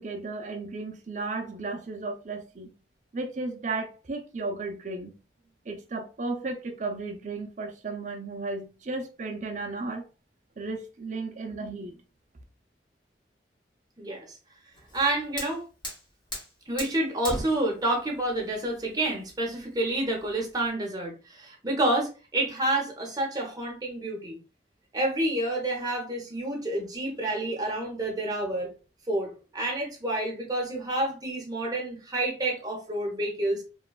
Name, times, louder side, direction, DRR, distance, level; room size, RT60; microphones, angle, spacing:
voice 1, 0.0-2.7 3.1-5.1 5.7-10.0 10.6-11.9, right 3 dB, 45° right, 0.5 m, -34 dB
voice 2, 14.0-14.4 14.9-15.6 16.7-24.4 24.9-28.7 29.1-33.6, right 1 dB, 20° right, 0.8 m, -29 dB
Fire, 14.7-20.7, equal, 25° left, 1.0 m, -40 dB
3.1 x 2.2 x 2.2 m
head